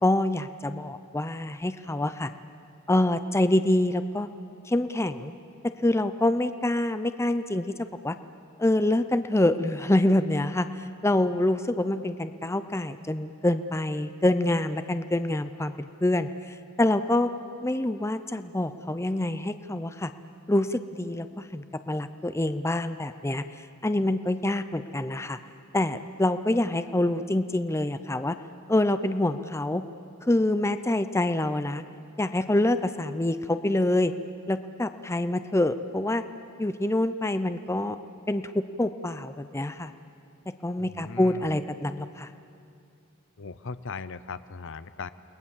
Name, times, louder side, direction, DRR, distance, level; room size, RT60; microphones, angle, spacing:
voice 1, 0.0-2.3 2.9-4.3 4.7-5.3 5.6-8.2 8.6-17.3 17.6-20.1 20.5-23.4 23.8-25.4 25.7-28.4 28.7-29.8 30.2-31.8 32.2-34.1 34.5-36.2 36.6-38.0 38.3-39.9 40.6-42.3, left 1 dB, 15° left, 11 dB, 0.6 m, -26 dB
voice 2, 40.8-41.5 43.4-45.1, left 4 dB, 60° left, 14 dB, 0.7 m, -38 dB
29.0 x 20.5 x 7.3 m, 2.5 s
head